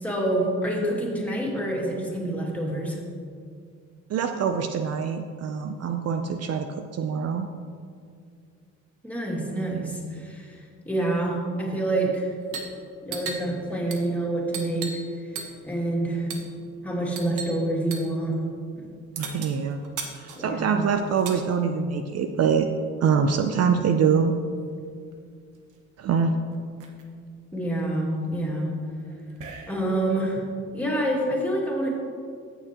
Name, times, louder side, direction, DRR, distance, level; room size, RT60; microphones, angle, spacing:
voice 1, 0.0-3.0 9.0-12.3 13.0-15.0 15.6-16.3 16.8-18.4 18.8-18.9 20.4-20.6 27.5-28.7 29.7-30.4 30.7-31.9, right 1 dB, 5° left, -4 dB, 2.3 m, -27 dB
voice 2, 4.1-7.5 19.2-19.8 20.2-22.7 23.0-24.3 26.0-26.4, right 6 dB, 55° right, 7 dB, 0.5 m, -24 dB
sound 1, 12.4-12.8 13.0-15.1 15.4-15.7 16.3-16.5 17.2-17.6 17.9-18.1 19.2-21.4 22.5-23.6 24.8-24.9 25.1-25.7 26.2-26.3 26.5-27.0 27.6-30.0, right 5 dB, 80° right, 1.1 m, -38 dB
15.0 x 6.7 x 3.0 m, 2.2 s
cardioid pair, 90°, 30 cm